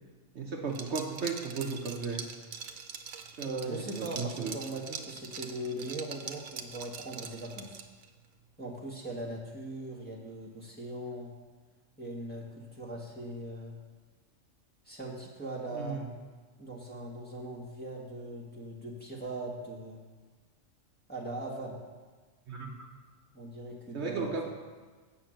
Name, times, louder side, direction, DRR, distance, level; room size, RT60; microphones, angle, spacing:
voice 1, 0.3-2.2 3.4-4.5 15.7-16.1 22.5-22.9 23.9-24.5, right 4 dB, 60° right, 1 dB, 1.0 m, -35 dB
Liquid, 0.7-8.1, right 7 dB, 85° right, 1.1 m, -43 dB
voice 2, 3.4-7.8 8.6-11.3 12.0-13.7 14.8-16.0 16.6-20.0 21.1-21.8 23.3-24.5, right 1 dB, 5° left, -4 dB, 1.4 m, -40 dB
8.5 x 5.8 x 7.5 m, 1.4 s
omnidirectional pair, 1.4 m